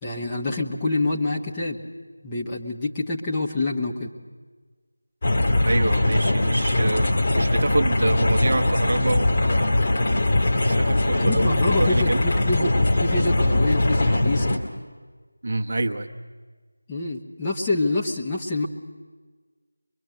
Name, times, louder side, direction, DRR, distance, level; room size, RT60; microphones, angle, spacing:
voice 1, 0.0-1.8 2.2-4.1 11.2-14.6 16.9-18.7, left 2 dB, 10° left, -4 dB, 1.1 m, -26 dB
sound 1, 5.2-14.6, left 2 dB, 30° left, 2.4 m, -21 dB
voice 2, 5.6-9.8 10.6-12.2 15.4-16.1, right 2 dB, 40° right, 3 dB, 1.1 m, -26 dB
23.5 x 22.5 x 7.7 m, 1.4 s
figure-of-eight pair, 165°, 0 cm